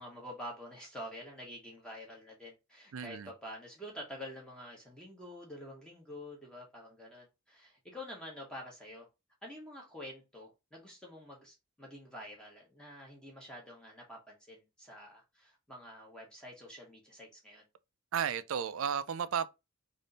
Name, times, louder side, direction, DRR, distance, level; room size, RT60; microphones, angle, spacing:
voice 1, 0.0-9.1 9.4-17.6, equal, 5° left, 1.0 m, -48 dB
voice 2, 2.9-3.3 18.1-19.5, right 7 dB, 65° right, 0.4 m, -33 dB
3.5 x 2.6 x 3.9 m
head